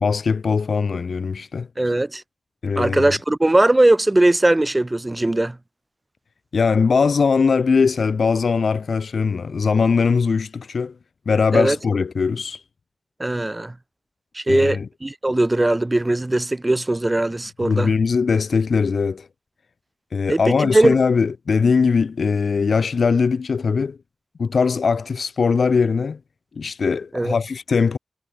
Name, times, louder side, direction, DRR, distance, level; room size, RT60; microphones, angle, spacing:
voice 1, 0.0-1.7 2.6-3.1 6.5-10.9 11.3-12.6 14.5-14.9 17.6-19.3 20.1-24.0 24.4-26.2 26.6-28.0, left 5 dB, 80° left, 0.3 m, -20 dB
voice 2, 1.8-2.2 2.8-5.6 11.5-11.8 13.2-13.7 14.3-17.9 20.3-21.0 27.1-27.3, right 2 dB, 25° right, 0.8 m, -19 dB
cardioid pair, 55°, 0 cm